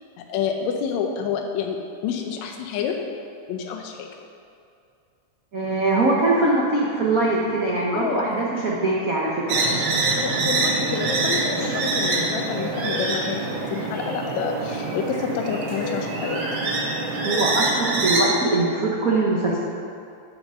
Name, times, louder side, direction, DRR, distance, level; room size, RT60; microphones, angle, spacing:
voice 1, 0.2-3.0 3.5-4.1 7.9-8.3 10.2-16.4, left 6 dB, 75° left, 2 dB, 2.0 m, -28 dB
voice 2, 5.5-9.6 17.2-19.6, right 2 dB, 85° right, -4 dB, 0.7 m, -22 dB
sound 1, 9.5-18.2, right 2 dB, 70° right, 2.8 m, -25 dB
8.2 x 8.1 x 6.3 m, 2.5 s
omnidirectional pair, 3.3 m